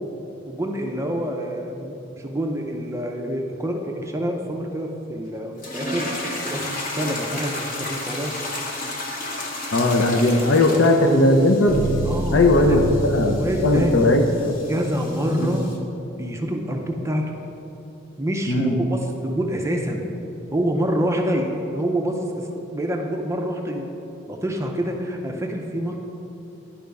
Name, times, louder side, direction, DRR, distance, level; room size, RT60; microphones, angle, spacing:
voice 1, 0.5-6.1 6.4-8.3 12.1-12.4 12.7-12.8 13.3-13.9 14.7-15.7 16.2-17.3 18.2-20.0 20.5-23.9 24.3-26.0, equal, 15° right, 2 dB, 0.5 m, -26 dB
sound 1, 5.6-15.8, left 2 dB, 40° left, 1.0 m, -33 dB
voice 2, 9.7-11.8 12.3-13.3 13.6-14.5 15.4-15.5 18.5-18.9, left 2 dB, 65° left, 4 dB, 0.6 m, -18 dB
sound 2, 10.5-14.6, right 2 dB, 60° right, 0.6 m, -29 dB
10.0 x 3.5 x 5.2 m, 2.8 s
head